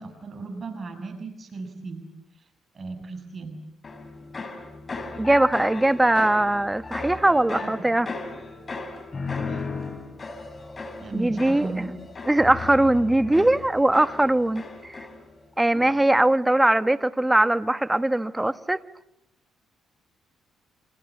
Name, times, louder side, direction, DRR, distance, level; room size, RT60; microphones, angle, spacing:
voice 1, 0.0-2.0 2.7-3.6 7.6-7.9 9.5-9.7 11.0-11.9, right 3 dB, 40° right, 6.8 m, -36 dB
sound 1, 3.8-15.4 15.7-16.2, left 3 dB, 30° left, 4.4 m, -36 dB
voice 2, 5.2-8.1 11.1-11.7 12.3-15.0 15.6-18.8, right 1 dB, 10° right, 1.2 m, -21 dB
29.0 x 26.5 x 7.4 m
cardioid pair, 90°, 0 cm